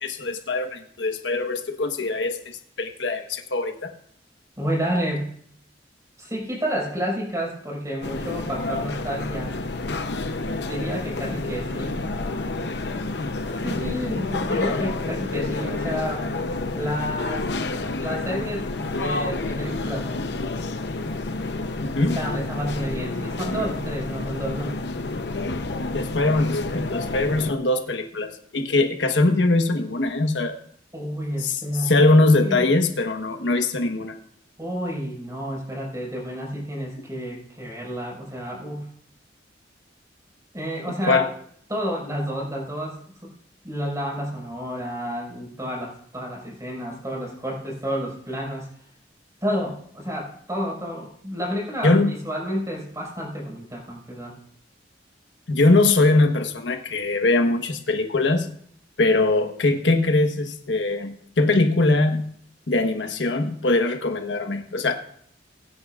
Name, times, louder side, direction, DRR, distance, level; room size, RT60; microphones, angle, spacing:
voice 1, 0.0-3.9 21.8-22.2 25.9-30.6 31.4-31.6 31.8-34.1 41.0-41.2 51.8-52.1 55.5-58.5 59.0-62.3 62.7-64.9, left 2 dB, 90° left, 5 dB, 1.3 m, -21 dB
voice 2, 4.6-5.3 6.2-9.6 10.6-12.1 13.5-16.3 16.7-17.5 18.0-18.7 19.0-20.1 22.1-24.8 30.9-31.9 32.4-32.7 34.6-38.9 40.5-41.3 41.7-43.3 43.6-48.7 49.4-54.4, equal, 20° right, -3 dB, 5.3 m, -30 dB
sound 1, 8.0-27.5, left 2 dB, 70° left, 0.8 m, -29 dB
22.0 x 9.7 x 2.5 m, 0.63 s
head